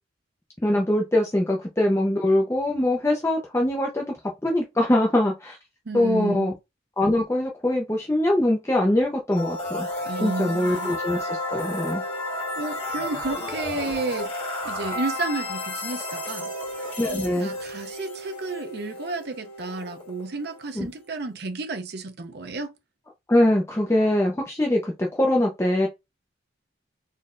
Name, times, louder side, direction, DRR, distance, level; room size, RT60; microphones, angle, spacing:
voice 1, 0.6-4.0 4.4-5.6 5.9-6.5 7.0-9.9 10.2-12.0 17.0-17.5 20.8-20.9 23.3-25.9, left 1 dB, 15° left, 0.5 m, -23 dB
voice 2, 5.9-6.5 10.1-10.9 12.6-14.3 14.6-16.5 17.1-22.7, right 2 dB, 55° right, 0.6 m, -32 dB
sound 1, 9.3-21.2, left 1 dB, 40° left, 2.3 m, -32 dB
4.0 x 3.2 x 2.5 m
head